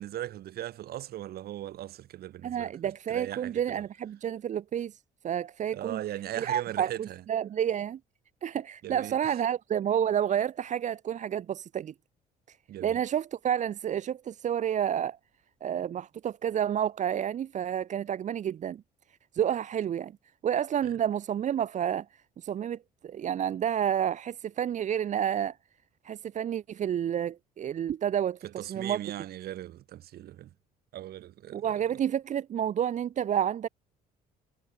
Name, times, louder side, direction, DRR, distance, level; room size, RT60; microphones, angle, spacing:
voice 1, 0.0-2.7 3.1-3.8 5.7-7.2 8.8-9.1 12.7-13.0 28.4-30.5 30.9-31.8, right 13 dB, 65° right, 5.5 m, -39 dB
voice 2, 2.4-6.0 6.4-8.0 8.4-11.9 12.5-15.2 15.6-18.8 19.3-20.1 20.4-22.1 22.4-22.8 23.0-25.6 26.0-29.0 31.5-33.7, right 9 dB, 45° right, 0.9 m, -30 dB
cardioid pair, 110°, 17 cm